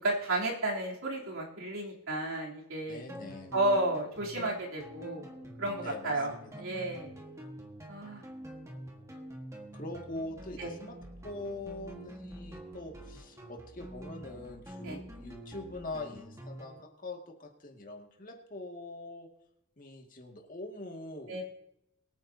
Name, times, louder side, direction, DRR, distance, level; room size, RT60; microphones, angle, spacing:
voice 1, 0.0-3.0 3.5-5.3 5.6-6.3 6.6-7.2 7.9-8.3 10.6-10.7 14.8-15.0 21.3-21.4, right 2 dB, 65° right, -3 dB, 3.4 m, -32 dB
voice 2, 2.9-3.5 5.8-6.5 9.7-11.0 11.2-19.3 19.8-21.4, left 2 dB, 35° left, 1 dB, 2.1 m, -43 dB
sound 1, 3.1-16.8, equal, 15° right, 1.5 m, -47 dB
23.5 x 9.2 x 2.8 m, 0.81 s
head